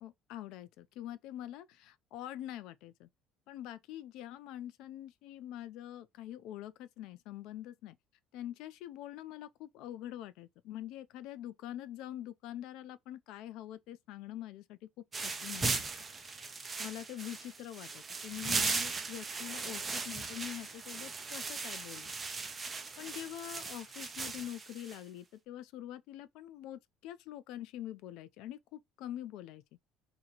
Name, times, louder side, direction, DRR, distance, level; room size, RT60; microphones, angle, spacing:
voice 1, 0.0-3.1 3.5-8.0 8.3-15.9 16.8-22.1 23.0-29.6, left 12 dB, 70° left, 0.4 m, -45 dB
sound 1, 15.1-25.0, right 4 dB, 20° right, 0.6 m, -38 dB
3.0 x 2.8 x 4.0 m
cardioid pair, 145°, 0 cm